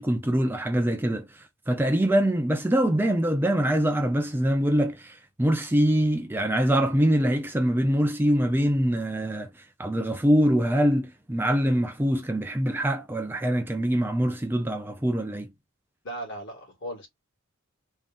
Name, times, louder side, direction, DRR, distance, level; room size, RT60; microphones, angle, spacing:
voice 1, 0.0-15.5, equal, 10° right, 0.5 m, -24 dB
voice 2, 16.0-17.1, right 1 dB, 60° left, 2.1 m, -37 dB
3.7 x 2.5 x 3.5 m
head